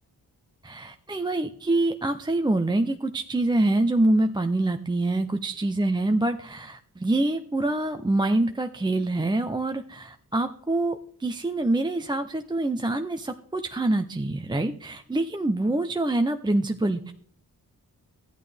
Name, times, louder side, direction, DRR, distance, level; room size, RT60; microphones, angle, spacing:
voice 1, 0.6-17.1, right 2 dB, 10° right, 6 dB, 0.6 m, -25 dB
13.0 x 8.7 x 3.4 m, 0.62 s
cardioid pair, 55°, 39 cm